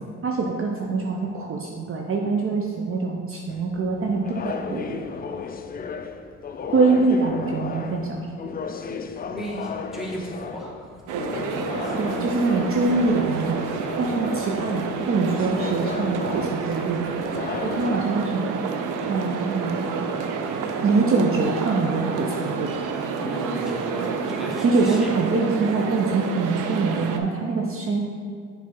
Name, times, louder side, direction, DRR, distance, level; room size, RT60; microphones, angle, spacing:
voice 1, 0.2-5.0 6.7-8.3 12.0-13.6 14.0-17.2 17.6-18.5 19.1-19.7 20.8-22.8 24.6-28.0, right 3 dB, 45° right, 0 dB, 0.7 m, -24 dB
sound 1, 3.5-18.0, left 5 dB, 30° left, 0.4 m, -35 dB
voice 2, 9.3-10.9 11.3-11.9 23.2-25.1, right 1 dB, ahead, -4 dB, 1.6 m, -34 dB
sound 2, 11.1-27.2, right 5 dB, 85° right, 0.6 m, -29 dB
6.5 x 3.4 x 5.3 m, 2.1 s
cardioid pair, 90°, 30 cm